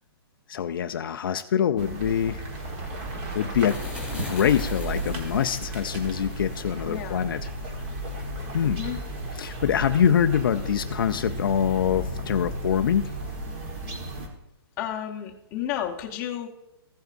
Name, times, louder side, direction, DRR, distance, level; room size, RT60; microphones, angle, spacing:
voice 1, 0.5-2.4 3.3-7.5 8.5-8.8 9.3-13.1, left 8 dB, 60° left, 8 dB, 0.4 m, -25 dB
sound 1, 1.8-14.3, right 1 dB, 25° right, 1.3 m, -34 dB
sound 2, 2.7-9.2, equal, 5° right, 2.8 m, -42 dB
Purr, 6.6-8.6 9.2-14.5, left 2 dB, 85° right, 3.6 m, -48 dB
voice 2, 6.8-7.3 8.6-9.0 14.8-16.5, left 10 dB, 20° left, 0 dB, 0.9 m, -32 dB
15.0 x 7.9 x 2.5 m, 0.91 s
hypercardioid pair, 170°, 13 cm